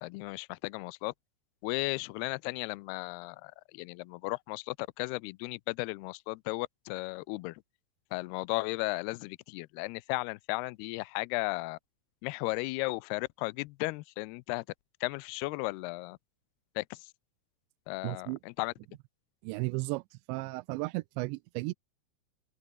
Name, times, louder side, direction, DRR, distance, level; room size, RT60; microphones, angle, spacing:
voice 1, 0.0-1.1 1.6-7.6 8.1-11.8 12.2-14.7 15.0-16.2 16.8-17.1 17.9-18.7, left 24 dB, 85° left, 2.3 m, -35 dB
voice 2, 18.0-18.4 19.4-20.0 20.3-21.7, right 23 dB, 85° right, 2.8 m, -34 dB
open air
omnidirectional pair, 5.1 m